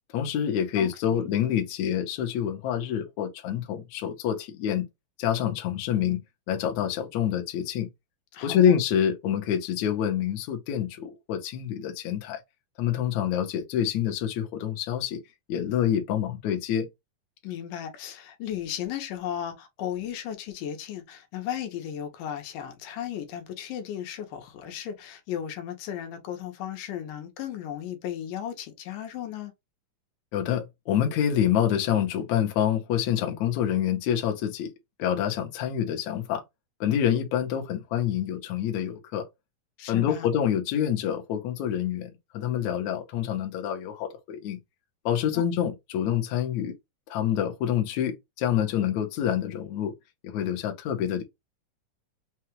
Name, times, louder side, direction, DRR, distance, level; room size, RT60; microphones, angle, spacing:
voice 1, 0.1-4.9 5.2-6.2 6.5-7.9 8.4-12.4 12.8-15.2 15.5-16.9 30.3-34.7 35.0-36.4 36.8-39.3 39.9-44.6 45.1-46.7 47.1-49.9 50.2-51.2, left 9 dB, 70° left, 2.0 m, -27 dB
voice 2, 0.8-1.2 8.3-8.8 17.4-29.5 39.8-40.3 45.3-45.4, left 10 dB, 90° left, 2.5 m, -35 dB
5.8 x 2.2 x 3.0 m
omnidirectional pair, 3.7 m